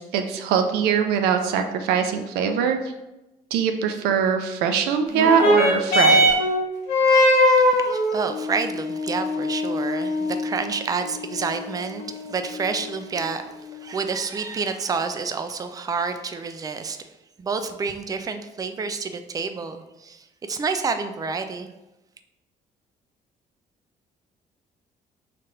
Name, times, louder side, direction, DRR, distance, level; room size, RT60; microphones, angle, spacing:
voice 1, 0.0-2.8 3.5-6.3, right 7 dB, 90° right, 5 dB, 0.4 m, -22 dB
sound 1, 5.1-14.1 14.9-15.0, left 1 dB, 90° left, 1.0 m, -22 dB
voice 2, 7.1-13.4 13.8-17.0 17.4-21.7, right 5 dB, 25° right, 8 dB, 0.4 m, -29 dB
3.1 x 2.5 x 4.3 m, 0.97 s
supercardioid pair, 70°, 16 cm